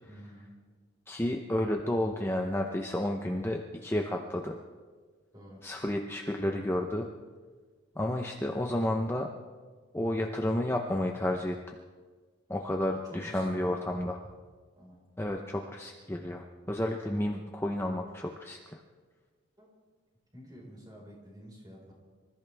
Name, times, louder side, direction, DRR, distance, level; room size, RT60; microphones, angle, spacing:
voice 1, 0.0-0.5 5.3-5.6 13.0-14.0 14.2-14.3 14.8-15.0 19.6-19.7 20.3-21.9, equal, 20° right, -3 dB, 4.7 m, -49 dB
voice 2, 1.1-4.5 5.6-7.1 8.0-9.3 9.9-11.6 12.5-14.2 15.2-18.6, left 1 dB, 10° left, 2 dB, 0.7 m, -31 dB
26.5 x 14.0 x 3.4 m, 1.5 s
head